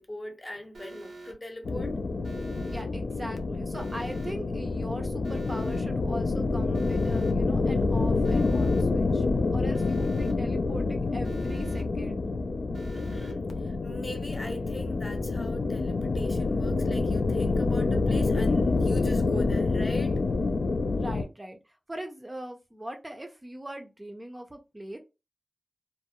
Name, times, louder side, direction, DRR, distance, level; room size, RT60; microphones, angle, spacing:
voice 1, 0.0-2.0 12.9-20.2, left 1 dB, 30° left, 0.7 m, -40 dB
Alarm, 0.7-1.3 2.2-2.8 3.7-4.3 5.2-5.8 6.7-7.3 8.2-8.8 9.7-10.3 11.2-11.8 12.7-13.3, right 2 dB, 85° right, 0.5 m, -45 dB
sound 1, 1.6-21.2, left 3 dB, 80° left, 0.3 m, -27 dB
voice 2, 2.7-9.3 9.5-12.3 21.0-25.0, right 1 dB, 20° right, 0.4 m, -40 dB
2.2 x 2.0 x 2.8 m
cardioid pair, 60°, 0 cm